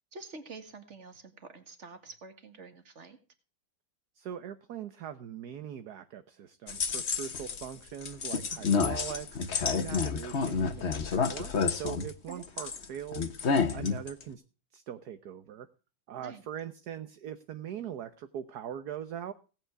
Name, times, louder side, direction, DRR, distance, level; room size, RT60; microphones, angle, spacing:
voice 1, 0.1-3.2 12.3-12.4 16.2-16.4, right 4 dB, 35° right, 9 dB, 2.2 m, -47 dB
voice 2, 4.1-13.3 13.7-14.4 14.7-15.7 16.1-19.3, right 9 dB, 60° right, 11 dB, 1.4 m, -41 dB
sound 1, 6.7-7.7 8.0-12.8 13.1-14.2, left 5 dB, 40° left, 1.3 m, -29 dB
17.5 x 9.2 x 4.7 m, 0.36 s
omnidirectional pair, 2.1 m